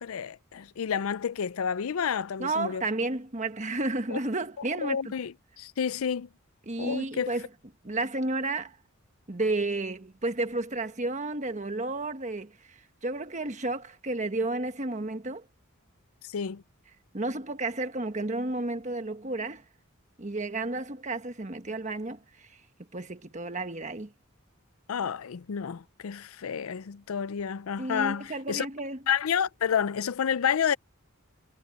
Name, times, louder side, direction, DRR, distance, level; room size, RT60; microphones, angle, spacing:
voice 1, 0.0-2.8 4.1-4.2 4.8-6.3 6.8-7.3 16.2-16.6 24.9-28.7 29.1-30.8, left 7 dB, 80° left, 0.5 m, -30 dB
voice 2, 2.4-5.0 6.7-7.4 7.8-8.8 9.3-12.5 13.0-15.4 17.1-19.6 20.2-22.5 22.9-24.1 27.8-29.0, right 2 dB, 35° right, 1.3 m, -32 dB
head